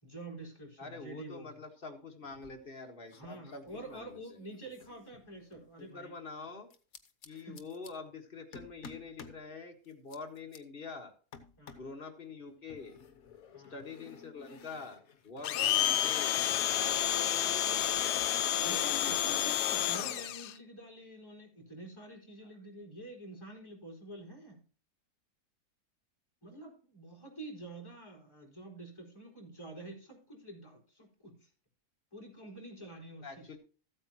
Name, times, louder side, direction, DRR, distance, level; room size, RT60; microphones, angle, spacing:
voice 1, 0.0-1.5 3.1-6.1 7.3-7.6 11.6-11.8 13.5-13.8 15.4-15.6 17.0-17.2 18.6-24.6 26.4-31.5 32.1-33.5, right 1 dB, 15° left, 0 dB, 4.3 m, -48 dB
voice 2, 0.8-4.4 5.8-6.7 7.2-11.1 11.8-13.0 13.7-16.4 16.8-19.4 22.4-22.5 33.2-33.6, left 4 dB, 35° left, 3 dB, 1.7 m, -46 dB
sound 1, 2.3-2.8 3.1-5.7 6.7-7.9 8.5-9.4 9.8-10.6 11.3-12.0 12.7-16.7 17.0-18.2, left 5 dB, 60° left, 1.5 m, -54 dB
Domestic sounds home sounds, 15.4-20.5, left 12 dB, 80° left, 1.2 m, -30 dB
14.5 x 8.7 x 2.9 m, 0.38 s
omnidirectional pair, 1.7 m